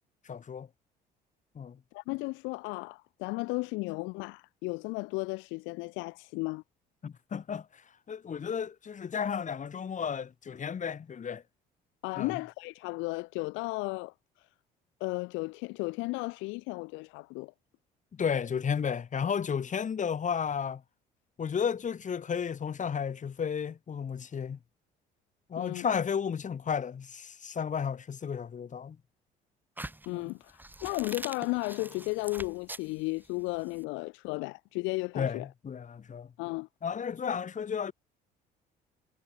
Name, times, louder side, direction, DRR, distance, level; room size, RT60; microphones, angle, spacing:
voice 1, 0.2-0.7 1.5-1.8 7.0-7.8 8.1-11.4 12.1-12.4 18.1-20.8 21.4-24.6 25.5-29.0 30.1-30.3 35.1-36.3 36.8-37.9, left 7 dB, 40° left, 1.6 m, -33 dB
voice 2, 1.9-6.6 12.0-14.1 15.0-17.5 25.6-25.9 30.1-35.5 36.4-36.7, left 25 dB, 70° left, 0.7 m, -34 dB
sound 1, 29.8-33.8, right 1 dB, 10° right, 1.9 m, -44 dB
hypercardioid pair, 60°, 20 cm